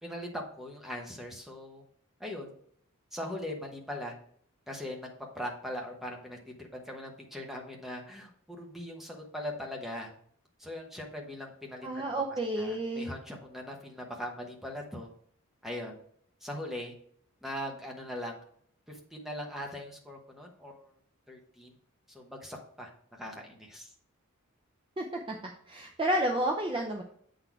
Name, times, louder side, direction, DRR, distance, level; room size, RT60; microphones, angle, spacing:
voice 1, 0.0-1.8 2.2-2.5 3.1-4.1 4.7-5.1 5.3-10.1 10.6-15.1 15.6-16.0 16.4-16.9 17.4-18.4 18.9-20.9 21.3-21.7 22.1-22.9 23.2-23.9, left 1 dB, ahead, 0 dB, 1.0 m, -40 dB
voice 2, 11.8-13.1 25.0-25.4 25.7-27.0, right 1 dB, 25° right, 2 dB, 0.5 m, -31 dB
7.7 x 4.0 x 4.6 m, 0.63 s
head